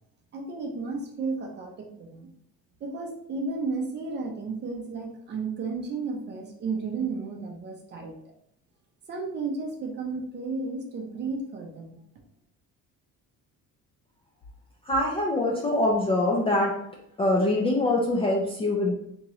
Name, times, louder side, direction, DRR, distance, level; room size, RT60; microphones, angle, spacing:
voice 1, 0.3-2.3 2.8-8.2 9.1-12.0, right 4 dB, 30° right, 1 dB, 0.6 m, -33 dB
voice 2, 14.9-16.8 17.2-18.9, left 1 dB, 15° left, -3 dB, 0.3 m, -24 dB
3.6 x 2.9 x 3.0 m, 0.72 s
cardioid pair, 175°, 34 cm